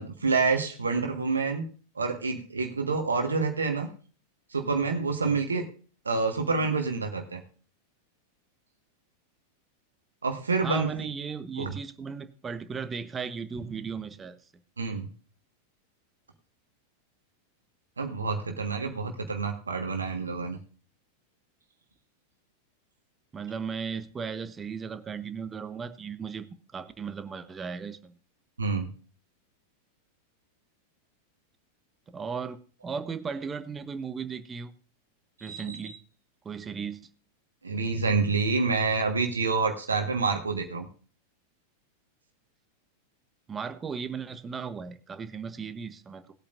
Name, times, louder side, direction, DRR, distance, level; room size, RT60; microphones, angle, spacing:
voice 1, 0.0-1.6 1.9-3.9 4.5-5.6 6.0-7.4 10.2-10.9 11.6-11.7 14.8-15.1 18.0-20.6 28.6-28.9 35.4-36.0 37.6-40.9, right 4 dB, 75° right, 4 dB, 1.5 m, -28 dB
voice 2, 10.6-14.4 23.3-28.2 32.1-34.7 35.4-36.0 36.4-37.1 43.5-46.2, right 6 dB, 20° right, 12 dB, 0.9 m, -36 dB
19.0 x 8.6 x 2.6 m, 0.38 s
figure-of-eight pair, 90°, 0 cm